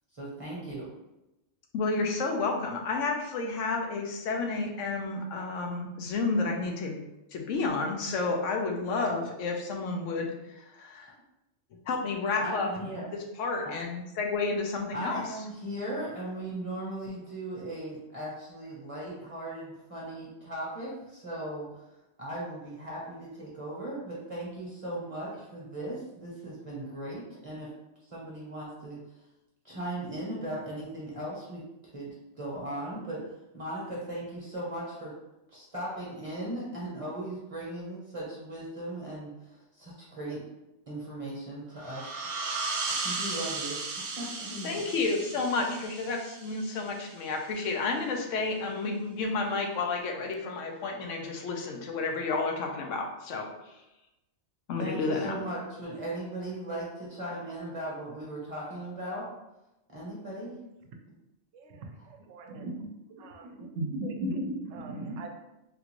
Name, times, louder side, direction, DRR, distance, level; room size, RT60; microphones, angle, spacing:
voice 1, 0.1-0.9 12.4-13.1 13.6-13.7 14.9-21.8 22.2-27.7 28.1-29.0 29.6-31.6 31.9-33.2 33.5-35.1 35.5-40.4 40.9-42.1 42.9-43.8 44.2-44.8 54.8-59.3 59.9-60.6 62.0-62.1, right 1 dB, 30° right, -6 dB, 0.8 m, -38 dB
voice 2, 1.7-7.0 7.3-11.1 11.9-12.7 13.1-15.2 44.6-53.7 54.7-55.4, left 3 dB, 85° left, 2 dB, 1.0 m, -31 dB
sound 1, 41.8-47.1, right 3 dB, 60° right, 0.5 m, -36 dB
voice 3, 61.6-61.9 62.3-62.9 63.8-65.3, right 1 dB, 80° right, 4 dB, 0.9 m, -35 dB
3.5 x 2.4 x 2.9 m, 0.92 s
omnidirectional pair, 1.3 m